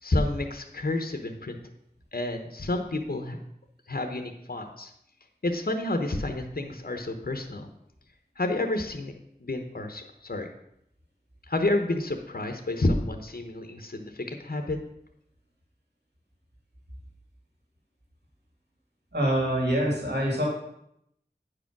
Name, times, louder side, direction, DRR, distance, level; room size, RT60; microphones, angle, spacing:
voice 1, 0.0-1.6 2.1-3.4 3.9-4.9 5.4-7.7 8.4-9.1 9.4-10.5 11.5-14.8, left 2 dB, 60° left, 5 dB, 1.0 m, -29 dB
voice 2, 19.1-20.5, right 1 dB, 80° right, -2 dB, 2.5 m, -25 dB
9.4 x 5.0 x 6.0 m, 0.77 s
wide cardioid pair, 45°, 17 cm